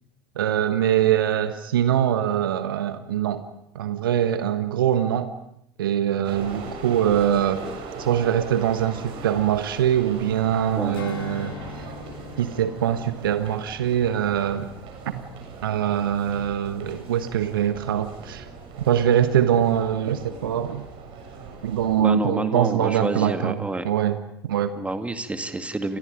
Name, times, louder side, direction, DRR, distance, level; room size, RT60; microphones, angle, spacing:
voice 1, 0.3-3.4 3.7-5.3 5.8-7.6 8.0-11.9 12.4-14.7 15.6-18.5 18.8-20.8 21.6-24.7, right 10 dB, 70° right, 11 dB, 1.4 m, -23 dB
sound 1, 6.2-22.0, right 4 dB, 45° right, 6.9 m, -40 dB
Strum, 10.9-15.6 16.0-16.2, left 6 dB, 75° left, 1.9 m, -42 dB
voice 2, 22.0-23.8 24.8-26.0, right 2 dB, 10° right, 8 dB, 2.2 m, -29 dB
29.5 x 25.0 x 5.3 m, 0.73 s
figure-of-eight pair, 75°, 12 cm